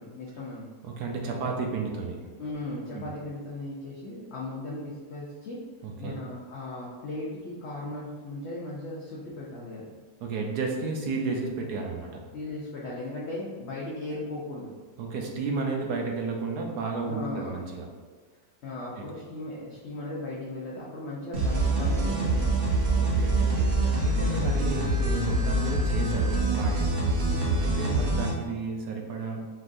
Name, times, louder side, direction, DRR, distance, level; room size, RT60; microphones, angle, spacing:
voice 1, 0.0-0.7 2.4-5.6 6.0-9.9 12.3-14.7 17.0-17.6 18.6-22.7 27.2-27.5, left 2 dB, 55° left, -5 dB, 0.8 m, -37 dB
voice 2, 0.8-2.2 2.9-3.1 5.8-6.2 10.2-12.2 15.0-17.9 22.9-26.9 27.6-29.5, right 4 dB, 80° right, 1 dB, 1.3 m, -32 dB
sound 1, 21.3-28.3, right 2 dB, 45° right, 1.1 m, -25 dB
5.3 x 3.6 x 2.5 m, 1.5 s
omnidirectional pair, 1.7 m